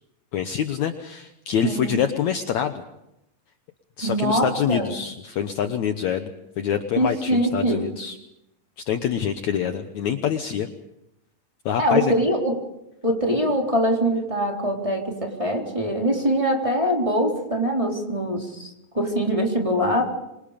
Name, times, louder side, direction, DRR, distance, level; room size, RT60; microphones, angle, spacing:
voice 1, 0.3-2.8 4.0-6.3 6.6-8.2 8.9-10.7 11.7-12.1, left 8 dB, 65° left, 7 dB, 2.1 m, -25 dB
voice 2, 1.6-2.0 4.0-4.9 7.0-7.9 11.8-12.6 13.0-20.1, equal, 10° right, -1 dB, 3.8 m, -23 dB
26.5 x 26.0 x 5.2 m, 0.87 s
omnidirectional pair, 4.0 m